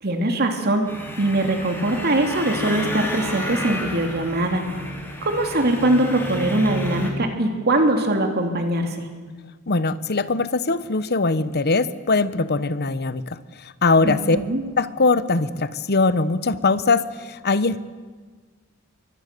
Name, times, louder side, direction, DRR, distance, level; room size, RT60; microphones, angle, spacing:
voice 1, 0.0-4.7 5.2-9.1 14.0-14.6, right 1 dB, 50° right, 4 dB, 2.9 m, -22 dB
sound 1, 0.9-7.1, left 1 dB, 10° left, 4.3 m, -31 dB
voice 2, 9.7-14.4 14.8-17.8, left 3 dB, 50° left, 14 dB, 1.0 m, -21 dB
27.0 x 24.0 x 6.9 m, 1.5 s
head